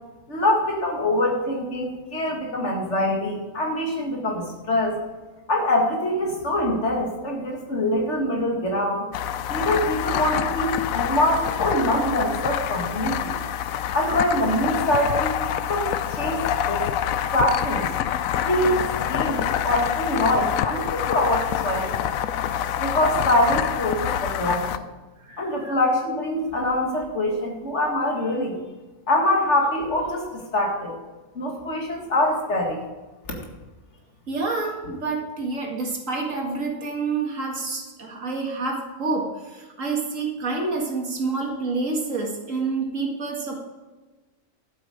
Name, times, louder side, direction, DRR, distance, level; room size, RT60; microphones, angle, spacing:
voice 1, 0.3-5.0 5.5-9.1 9.5-13.3 13.9-16.9 17.3-17.9 18.4-21.9 22.8-24.8 25.4-28.6 29.1-31.0 31.4-32.8, left 1 dB, 60° left, 0 dB, 2.3 m, -24 dB
sound 1, 9.1-24.8, left 10 dB, 90° left, 1.0 m, -26 dB
voice 2, 25.2-25.8 34.3-43.6, right 3 dB, 70° right, 1 dB, 2.3 m, -28 dB
11.5 x 8.4 x 5.0 m, 1.2 s
omnidirectional pair, 1.4 m